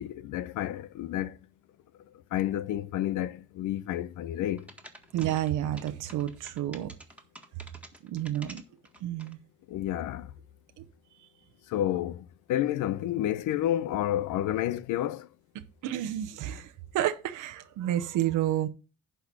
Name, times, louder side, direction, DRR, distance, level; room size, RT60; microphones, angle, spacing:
voice 1, 0.0-1.3 2.3-4.7 9.7-10.3 11.7-12.2 12.5-15.3, left 12 dB, 90° left, 0.7 m, -30 dB
sound 1, 4.6-9.3, right 1 dB, 5° right, 1.8 m, -48 dB
voice 2, 5.1-6.9 8.0-8.6 9.0-9.4 15.8-18.7, right 12 dB, 90° right, 0.9 m, -30 dB
11.0 x 4.5 x 6.0 m
cardioid pair, 90°, 30 cm